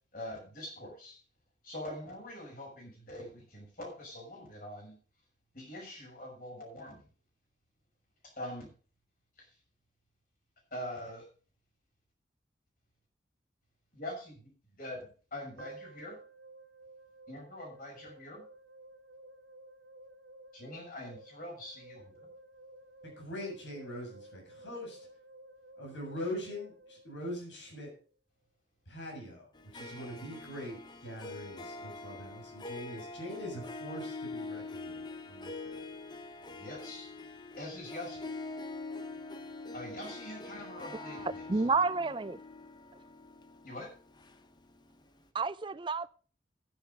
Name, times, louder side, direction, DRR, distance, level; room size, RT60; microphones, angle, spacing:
voice 1, 0.1-1.2 1.6-5.0 5.5-7.0 8.4-8.7 9.4-9.5 10.7-11.2 13.9-16.2 17.3-18.4 20.5-22.3 36.5-37.1 37.5-38.3 39.7-41.4 43.6-43.9, left 1 dB, 50° left, 6.0 m, -44 dB
sound 1, 15.6-27.8, right 2 dB, 90° right, 1.7 m, -54 dB
voice 2, 23.0-25.1 25.8-27.9 28.9-35.8, left 1 dB, 80° left, 7.0 m, -43 dB
Harp, 29.5-44.9, left 3 dB, 25° left, 0.8 m, -44 dB
voice 3, 40.9-42.4 45.3-46.1, right 4 dB, 25° right, 0.4 m, -31 dB
10.5 x 10.0 x 5.2 m
head